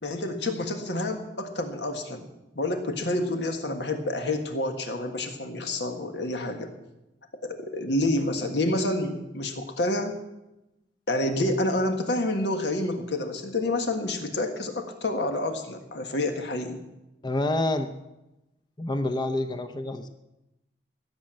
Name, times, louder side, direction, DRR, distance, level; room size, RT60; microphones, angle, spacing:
voice 1, 0.0-2.2 2.5-6.7 7.4-10.2 11.1-16.8, left 1 dB, 75° left, 5 dB, 1.7 m, -28 dB
voice 2, 17.2-17.9 18.8-20.1, left 2 dB, 25° left, 7 dB, 0.7 m, -27 dB
16.0 x 7.5 x 7.6 m, 0.96 s
head